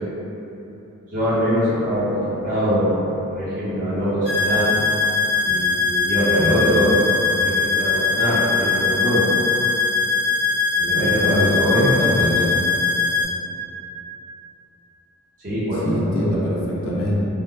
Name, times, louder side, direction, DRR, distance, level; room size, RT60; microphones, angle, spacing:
voice 1, 1.1-3.0 3.3-4.7 5.4-7.0 7.3-9.3 10.7-11.8 15.4-16.0 16.3-16.6, equal, 40° right, -12 dB, 1.0 m, -23 dB
sound 1, 4.3-13.3, left 4 dB, 75° right, 1.4 m, -21 dB
voice 2, 6.4-6.8 10.9-12.5 15.8-17.2, left 1 dB, 70° left, -6 dB, 0.5 m, -23 dB
3.5 x 2.2 x 2.3 m, 3.0 s
head